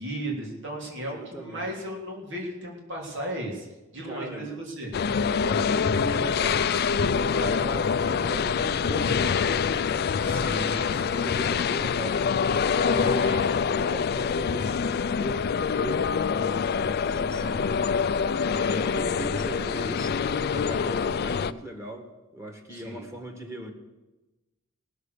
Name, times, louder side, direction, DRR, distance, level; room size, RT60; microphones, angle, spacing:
voice 1, 0.0-3.7 3.9-4.9 10.2-11.3 12.9-13.4 17.4-17.7 22.7-23.1, right 1 dB, 65° right, -1 dB, 3.2 m, -35 dB
voice 2, 1.0-1.7 4.0-4.5 5.3-9.9 10.2-10.7 11.2-12.2 12.7-13.3 13.6-14.8 15.1-17.6 18.4-23.7, right 1 dB, 15° right, 2 dB, 1.8 m, -38 dB
sound 1, 4.9-21.5, left 6 dB, 50° left, 0.4 m, -25 dB
18.0 x 6.7 x 6.7 m, 1.1 s
head